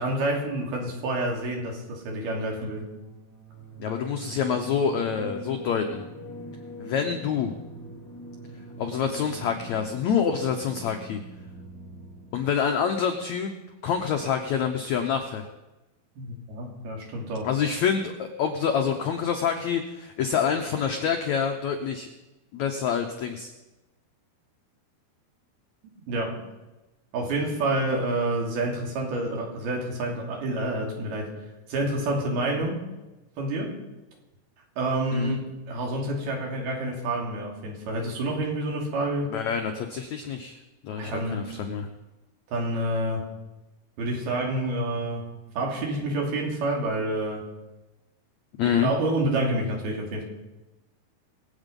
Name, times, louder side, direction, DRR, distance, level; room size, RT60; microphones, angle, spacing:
voice 1, 0.0-2.8 16.2-17.5 26.1-26.4 27.1-31.3 31.7-32.8 33.4-33.8 34.8-39.3 41.0-41.5 42.5-43.2 44.0-45.3 45.6-47.5 48.6-50.2, right 1 dB, 70° right, 0 dB, 4.7 m, -28 dB
sound 1, 2.6-12.5, right 1 dB, 25° left, 4.6 m, -42 dB
voice 2, 3.8-6.0 6.8-7.5 8.8-11.2 12.3-13.5 13.8-15.4 17.4-22.1 22.5-23.5 35.1-35.3 39.3-40.6 40.8-41.9 48.6-48.9, left 7 dB, 90° left, 5 dB, 1.6 m, -27 dB
24.0 x 8.3 x 5.3 m, 1.1 s
omnidirectional pair, 4.6 m